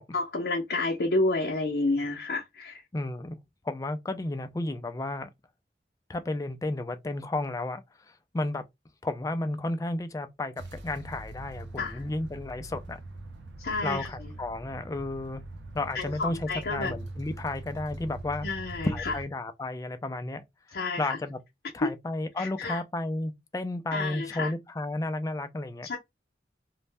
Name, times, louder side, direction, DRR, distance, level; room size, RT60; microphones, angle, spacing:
voice 1, 0.1-2.8 11.8-12.0 13.6-14.3 15.9-16.9 18.4-19.1 20.7-21.2 21.8-21.9 22.4-22.8 23.9-24.5 25.8-26.0, left 2 dB, 65° left, 0.6 m, -30 dB
voice 2, 2.9-3.4 3.6-5.3 6.1-7.8 8.3-8.6 9.0-10.5 10.8-13.0 13.8-15.4 15.7-18.5 18.8-20.4 21.0-21.4 21.7-25.9, left 2 dB, 20° left, 0.3 m, -32 dB
sound 1, 10.6-19.2, right 2 dB, 90° right, 0.5 m, -42 dB
2.6 x 2.1 x 3.2 m
head